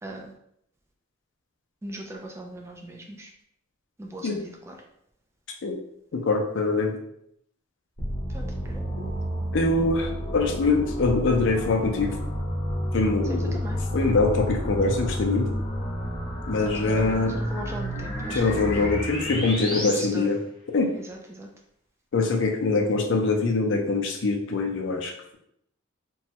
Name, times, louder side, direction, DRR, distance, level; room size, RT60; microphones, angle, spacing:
voice 1, 0.0-0.3 1.8-3.3 4.0-4.8 8.3-8.8 13.2-13.8 16.5-18.7 19.7-20.3 20.9-21.5, right 1 dB, 15° right, 0 dB, 0.3 m, -39 dB
voice 2, 6.1-7.0 9.5-12.2 12.9-13.6 13.9-15.5 16.5-17.3 18.3-20.4 20.7-20.9 22.1-25.4, left 3 dB, 65° left, 2 dB, 0.5 m, -24 dB
sound 1, 8.0-19.9, equal, 25° left, 0.7 m, -30 dB
3.0 x 2.2 x 2.8 m, 0.74 s
head